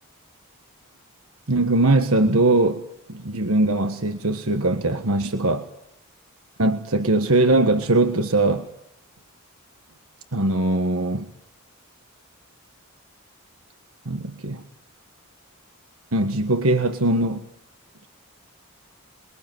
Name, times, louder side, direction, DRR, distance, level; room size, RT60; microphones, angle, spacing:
voice 1, 1.5-2.8 3.1-5.7 6.6-8.7 10.3-11.3 14.0-14.6 16.1-17.4, right 2 dB, 70° right, 7 dB, 1.5 m, -21 dB
29.0 x 22.0 x 9.3 m, 0.82 s
head